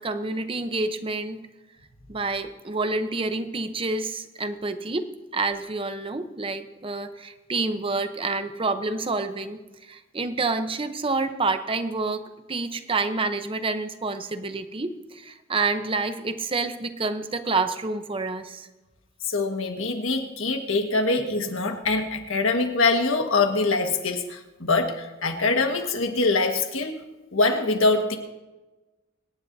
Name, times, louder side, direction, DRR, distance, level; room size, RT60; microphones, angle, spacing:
voice 1, 0.0-1.4 2.1-18.7, right 3 dB, 25° right, 9 dB, 0.8 m, -28 dB
voice 2, 19.2-26.9 27.3-28.2, left 3 dB, 80° left, 4 dB, 1.5 m, -24 dB
25.0 x 10.5 x 2.7 m, 1.1 s
head